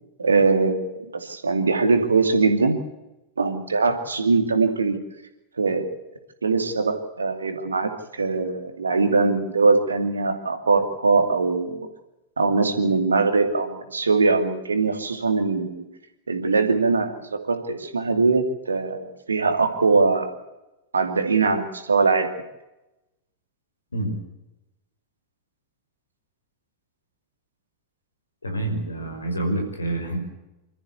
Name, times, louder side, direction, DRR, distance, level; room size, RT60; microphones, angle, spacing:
voice 1, 0.2-2.8 3.4-5.0 5.6-5.8 6.4-11.9 12.4-15.8 16.3-20.3 20.9-22.3, right 4 dB, 75° right, 6 dB, 2.6 m, -21 dB
voice 2, 28.4-30.3, right 2 dB, 75° left, 4 dB, 5.6 m, -27 dB
26.5 x 14.0 x 8.3 m, 0.98 s
figure-of-eight pair, 90°, 0 cm